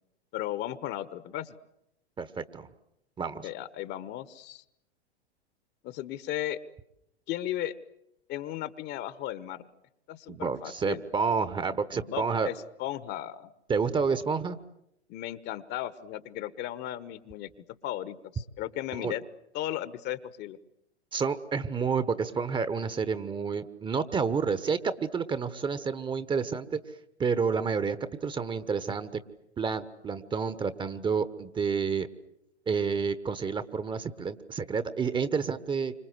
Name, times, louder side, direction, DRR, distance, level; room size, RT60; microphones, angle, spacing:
voice 1, 0.3-1.5 3.4-4.6 5.8-6.6 7.3-7.7 8.3-9.6 10.1-11.0 12.0-12.5 12.8-13.5 15.1-17.5 17.8-19.2 19.5-20.6, left 13 dB, 30° left, 16 dB, 1.3 m, -35 dB
voice 2, 2.2-2.7 3.2-3.5 10.3-12.5 13.7-14.6 18.9-19.1 21.1-26.8 27.2-28.0 28.2-29.2 29.6-32.1 32.7-35.9, right 5 dB, 15° right, 14 dB, 1.2 m, -29 dB
29.0 x 26.0 x 8.0 m, 0.83 s
figure-of-eight pair, 100°, 33 cm